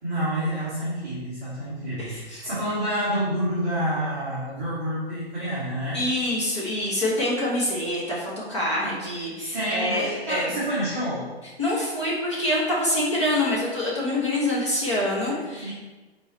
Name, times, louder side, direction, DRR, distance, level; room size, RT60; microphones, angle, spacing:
voice 1, 0.0-6.0 9.4-11.3 15.1-15.7, equal, 15° right, -12 dB, 1.2 m, -28 dB
voice 2, 2.0-2.5 5.9-10.5 11.6-15.7, left 1 dB, 25° left, -6 dB, 1.6 m, -26 dB
5.7 x 3.9 x 4.4 m, 1.2 s
hypercardioid pair, 180°, 33 cm